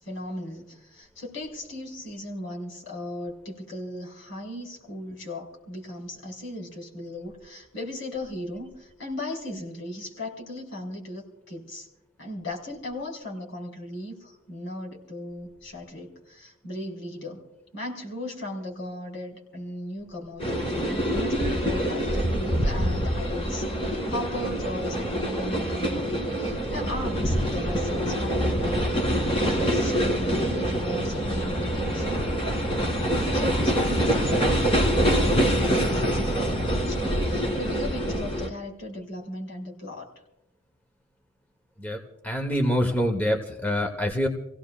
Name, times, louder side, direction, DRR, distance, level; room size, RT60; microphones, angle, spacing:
voice 1, 0.0-11.9 12.2-17.4 17.7-23.6 24.1-29.0 29.2-32.3 33.1-40.1, left 1 dB, 65° left, 0 dB, 4.7 m, -37 dB
sound 1, 20.4-38.5, equal, 25° left, 2.0 m, -25 dB
voice 2, 41.8-44.3, equal, 10° left, 3 dB, 1.1 m, -26 dB
29.0 x 17.0 x 2.4 m, 0.90 s
head